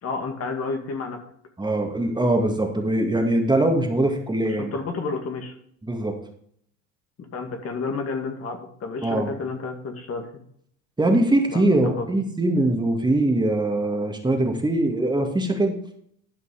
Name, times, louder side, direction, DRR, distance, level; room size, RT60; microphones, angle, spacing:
voice 1, 0.0-1.2 4.6-5.5 7.3-10.3 11.5-12.1, left 4 dB, 40° left, 4 dB, 2.1 m, -30 dB
voice 2, 1.6-4.7 5.8-6.2 9.0-9.3 11.0-15.8, right 1 dB, 10° right, 2 dB, 2.1 m, -22 dB
12.0 x 5.2 x 4.9 m, 0.65 s
hypercardioid pair, 80°, 36 cm